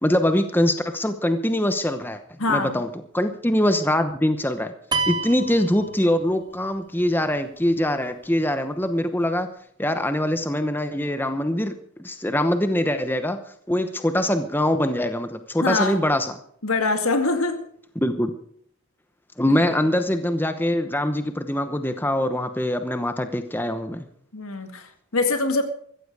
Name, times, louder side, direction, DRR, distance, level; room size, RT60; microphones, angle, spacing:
voice 1, 0.0-2.2 2.5-2.9 3.1-4.7 5.1-9.5 9.8-11.7 12.0-13.4 13.7-16.3 18.0-18.3 19.4-24.0, left 1 dB, 10° left, 9 dB, 0.9 m, -23 dB
voice 2, 2.4-2.8 15.6-16.0 16.6-17.6 19.5-19.8 24.3-25.6, left 3 dB, 75° left, 7 dB, 2.3 m, -24 dB
sound 1, 4.9-6.6, right 3 dB, 20° right, 1.3 m, -28 dB
15.0 x 15.0 x 4.9 m, 0.64 s
head